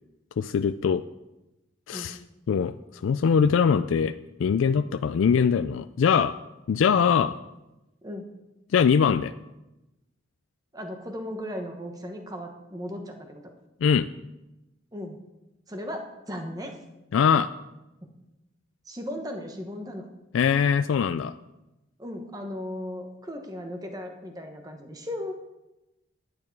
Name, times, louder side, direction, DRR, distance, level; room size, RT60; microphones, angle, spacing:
voice 1, 0.4-1.0 1.9-2.2 2.5-2.7 3.0-4.1 4.4-6.3 6.7-7.3 8.7-9.3 13.8-14.1 17.1-17.5 20.3-21.3, left 6 dB, 85° left, 12 dB, 0.3 m, -22 dB
voice 2, 10.7-13.5 14.9-15.2 15.7-16.8 18.8-20.1 22.0-25.3, left 1 dB, 20° right, 4 dB, 1.1 m, -36 dB
10.5 x 9.6 x 4.6 m, 0.99 s
head